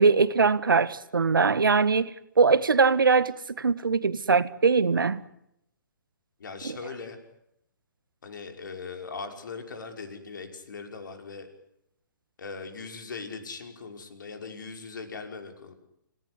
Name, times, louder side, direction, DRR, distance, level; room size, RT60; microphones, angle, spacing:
voice 1, 0.0-5.2 6.6-6.8, right 4 dB, 80° right, 14 dB, 1.6 m, -22 dB
voice 2, 6.4-7.2 8.2-11.5 12.4-15.7, left 4 dB, 65° left, 5 dB, 5.7 m, -40 dB
28.0 x 18.0 x 10.0 m, 0.79 s
figure-of-eight pair, 135°, 11 cm